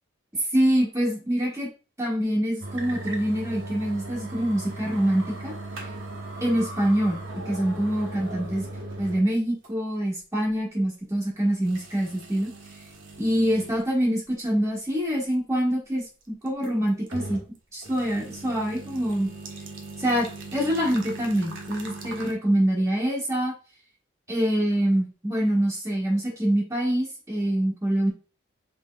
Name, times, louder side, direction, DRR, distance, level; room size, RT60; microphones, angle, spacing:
voice 1, 0.5-1.7 2.0-5.5 6.4-7.2 7.4-8.6 9.0-12.5 13.2-17.4 17.7-19.3 20.0-23.5 24.3-28.1, equal, 15° right, -3 dB, 1.5 m, -25 dB
sound 1, 2.6-9.3 9.6-9.7 10.5-10.6 11.6-13.8 14.3-14.4 16.5-17.5 17.8-22.3, right 2 dB, 65° right, 0.9 m, -38 dB
5.4 x 3.7 x 2.3 m, 0.33 s
head